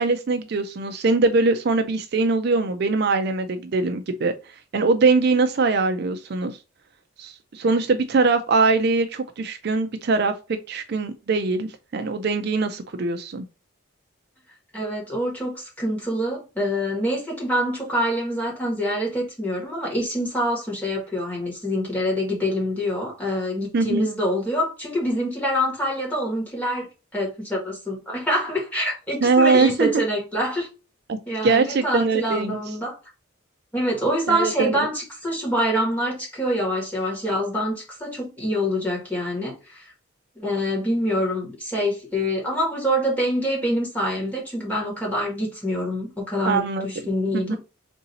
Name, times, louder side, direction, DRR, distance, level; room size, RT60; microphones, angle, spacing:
voice 1, 0.0-4.3 4.7-6.6 7.2-13.4 23.7-24.1 29.2-30.0 31.1-32.6 34.3-34.9 46.5-46.9 47.3-47.6, right 3 dB, 50° right, 0.4 m, -22 dB
voice 2, 14.7-26.9 27.1-30.7 31.3-33.0 33.7-39.9 40.3-47.6, equal, 10° left, 1.7 m, -25 dB
3.8 x 2.7 x 4.1 m
head